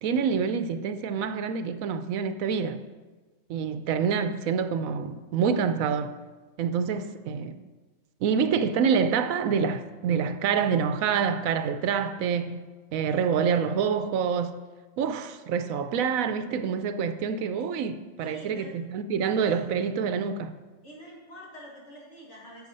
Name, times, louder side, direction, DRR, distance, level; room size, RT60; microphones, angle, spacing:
voice 1, 0.0-2.8 3.5-6.1 6.6-7.6 8.2-12.6 12.9-14.6 15.0-20.5, right 6 dB, 85° right, 1.0 m, -27 dB
voice 2, 18.2-18.7 19.4-19.6 20.8-22.7, equal, 55° left, 2.5 m, -47 dB
10.5 x 7.2 x 5.4 m
omnidirectional pair, 1.4 m